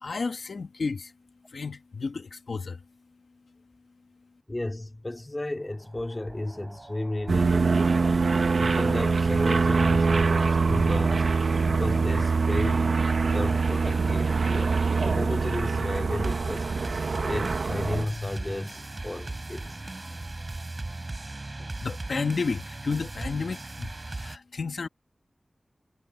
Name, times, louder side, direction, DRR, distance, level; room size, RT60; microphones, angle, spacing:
voice 1, 0.0-1.1 1.5-2.8 21.6-24.9, left 4 dB, 75° left, 1.3 m, -32 dB
voice 2, 4.5-7.9 8.6-11.4 11.7-12.9 13.2-16.7 17.2-19.8, left 1 dB, 25° left, 2.3 m, -33 dB
sound 1, 5.6-24.4, right 2 dB, 35° right, 3.7 m, -40 dB
sound 2, 7.3-18.0, right 4 dB, 75° right, 0.8 m, -24 dB
wide cardioid pair, 90°, 0 cm